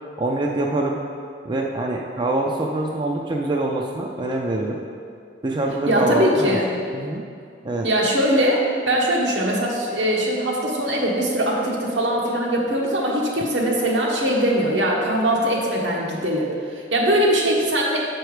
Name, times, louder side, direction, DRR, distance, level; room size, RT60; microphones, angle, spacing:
voice 1, 0.2-1.0 1.4-4.8 5.4-6.6 6.9-7.2 7.6-7.9, right 2 dB, 25° right, 0 dB, 0.4 m, -24 dB
voice 2, 5.9-6.7 7.8-18.0, equal, 80° right, -3 dB, 1.3 m, -21 dB
7.0 x 4.6 x 4.9 m, 2.3 s
head